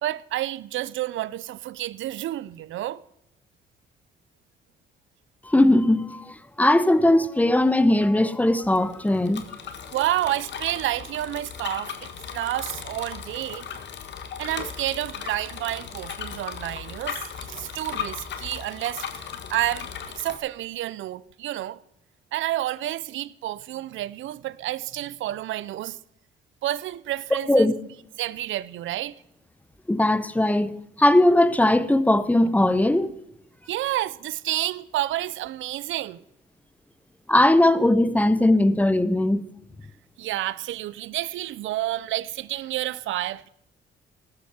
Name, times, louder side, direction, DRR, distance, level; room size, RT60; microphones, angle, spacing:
voice 1, 0.0-3.0 9.9-13.7 14.4-19.1 19.5-21.8 22.3-26.0 26.6-27.7 28.2-29.2 33.7-36.2 40.2-43.5, right 14 dB, 75° right, 0.6 m, -30 dB
voice 2, 5.4-9.5 27.5-27.7 29.9-33.1 37.3-39.4, left 1 dB, 5° left, 0.8 m, -19 dB
Bicycle, 8.6-20.4, left 7 dB, 65° left, 1.6 m, -37 dB
15.0 x 12.5 x 4.4 m
cardioid pair, 90°, 20 cm